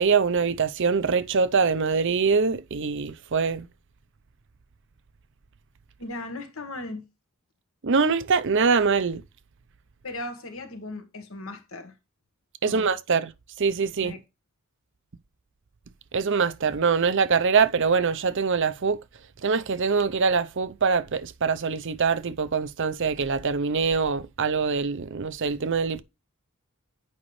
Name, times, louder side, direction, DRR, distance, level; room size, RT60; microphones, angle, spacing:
voice 1, 0.0-3.7 7.8-9.2 12.6-13.3 13.6-14.1 16.1-19.0 19.4-26.0, right 5 dB, 55° right, 0.6 m, -23 dB
voice 2, 6.0-7.0 10.0-11.9 12.6-12.9 14.0-14.2, left 2 dB, 65° left, 1.5 m, -37 dB
8.7 x 5.4 x 3.1 m
head